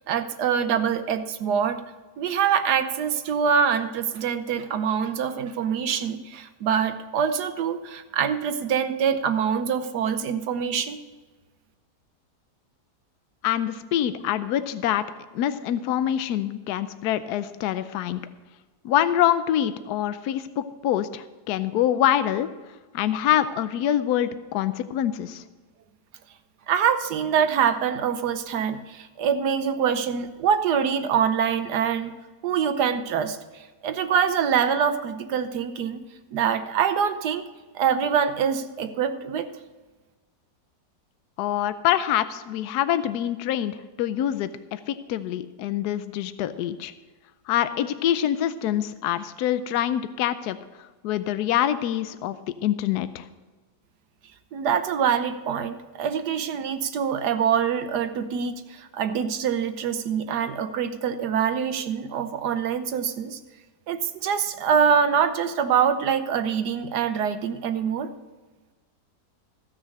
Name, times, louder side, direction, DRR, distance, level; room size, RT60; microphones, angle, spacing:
voice 1, 0.1-1.8 2.2-11.0 26.7-32.1 32.4-36.0 36.3-37.4 37.7-39.5 54.5-63.4 63.9-68.1, right 7 dB, 80° right, 10 dB, 1.4 m, -24 dB
voice 2, 13.4-15.0 15.3-18.2 18.8-22.5 22.9-25.4 41.4-46.9 47.5-50.6 51.0-52.4 52.6-53.2, left 11 dB, 75° left, 12 dB, 1.1 m, -25 dB
15.0 x 6.4 x 6.5 m, 1.3 s
omnidirectional pair, 1.8 m